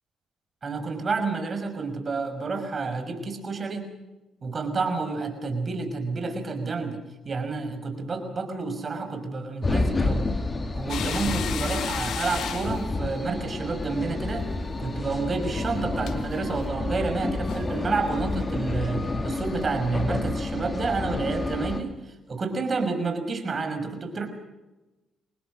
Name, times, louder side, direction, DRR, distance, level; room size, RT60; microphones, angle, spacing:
voice 1, 0.6-3.9 4.4-7.0 7.2-10.3 10.7-14.4 14.8-22.0 22.3-24.3, right 4 dB, 45° right, 6 dB, 5.8 m, -29 dB
sound 1, 9.6-21.8, left 2 dB, 30° left, 2.7 m, -29 dB
sound 2, 10.9-14.4 14.7-14.9 16.0-16.2 17.2-17.3 17.5-17.8 18.1-18.2 18.7-18.8, left 9 dB, 70° left, 1.6 m, -35 dB
25.5 x 20.0 x 6.3 m, 1.0 s
supercardioid pair, 65°, 0 cm